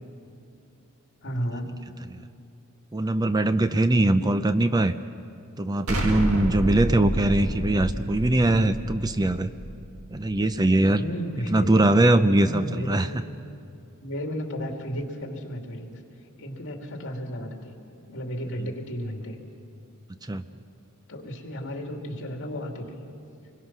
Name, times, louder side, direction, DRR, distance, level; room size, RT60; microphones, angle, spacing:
voice 1, 1.2-1.7 4.2-4.3 10.9-11.7 12.4-13.1 14.0-15.9 16.4-17.7 18.1-19.4 21.1-23.0, equal, 60° left, 2 dB, 2.7 m, -33 dB
voice 2, 2.9-4.9 5.6-9.5 10.1-11.0 11.5-13.1 20.3-20.4, right 1 dB, 20° right, 11 dB, 0.5 m, -21 dB
Explosion, 5.9-10.7, equal, 75° right, 2.2 m, -30 dB
26.5 x 22.0 x 6.0 m, 2.5 s
head